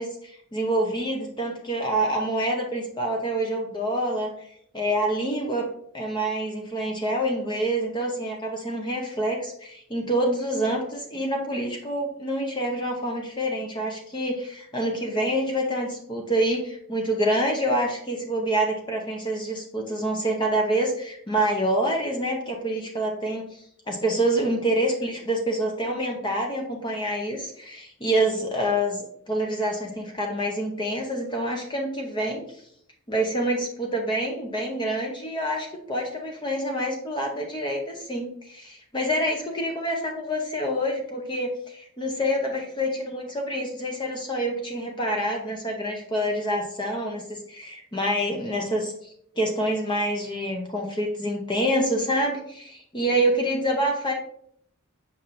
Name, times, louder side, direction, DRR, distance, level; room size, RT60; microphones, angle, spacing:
voice 1, 0.0-4.3 4.7-5.7 5.9-23.6 23.9-32.4 33.1-54.1, right 1 dB, 20° left, 1 dB, 0.7 m, -27 dB
7.2 x 5.4 x 2.5 m, 0.69 s
head